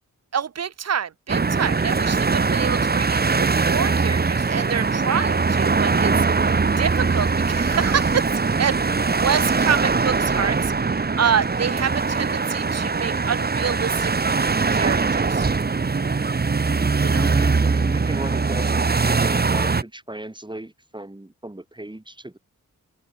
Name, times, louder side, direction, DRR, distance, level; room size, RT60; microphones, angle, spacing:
voice 1, 0.3-8.3 8.6-8.8 9.2-15.5 17.0-17.2, right 7 dB, 50° right, 0.6 m, -27 dB
sound 1, 1.3-19.8, right 4 dB, 30° right, 0.9 m, -21 dB
Car / Engine starting / Idling, 2.1-9.9, left 2 dB, 15° left, 5.1 m, -45 dB
voice 2, 16.7-22.4, right 1 dB, 15° right, 3.3 m, -35 dB
open air
wide cardioid pair, 90°, 33 cm